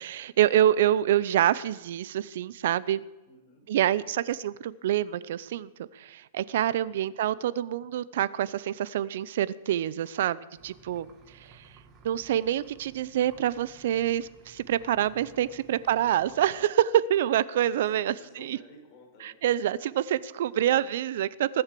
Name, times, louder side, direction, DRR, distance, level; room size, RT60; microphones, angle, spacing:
voice 1, 0.0-3.0 3.7-11.1 11.5-11.6 12.0-18.6 19.2-21.6, right 11 dB, 60° right, 18 dB, 0.6 m, -26 dB
voice 2, 3.3-3.7 6.8-7.1 11.4-11.5 15.3-15.5 16.1-16.2 17.8-19.6, left 2 dB, 30° left, -1 dB, 6.0 m, -54 dB
sound 1, 10.6-16.5, right 4 dB, 25° right, 2.0 m, -56 dB
20.5 x 7.9 x 6.8 m, 1.1 s
hypercardioid pair, 155°, 0 cm